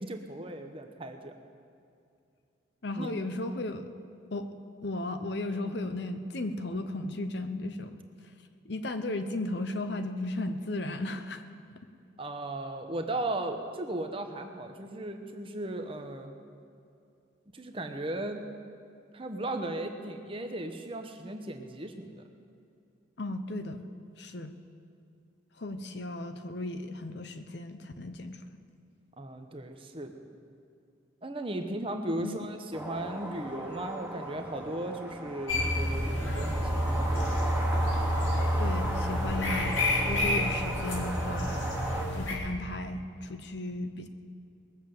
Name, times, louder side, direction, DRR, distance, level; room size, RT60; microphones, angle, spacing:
voice 1, 0.0-1.3 3.0-3.1 5.5-5.8 12.2-16.3 17.5-18.4 19.1-22.2 29.2-30.1 31.2-37.2, right 1 dB, 25° right, 5 dB, 1.0 m, -36 dB
voice 2, 2.8-3.9 4.3-4.5 4.8-7.9 8.7-11.4 23.2-23.9 24.2-24.5 25.6-28.4 32.1-32.4 38.6-41.7 42.1-44.1, left 2 dB, 60° left, 9 dB, 0.8 m, -35 dB
sound 1, 32.7-42.1, right 1 dB, 5° right, 1.4 m, -37 dB
sound 2, 35.5-42.3, left 1 dB, 75° left, 2.7 m, -29 dB
20.5 x 7.2 x 7.8 m, 2.5 s
head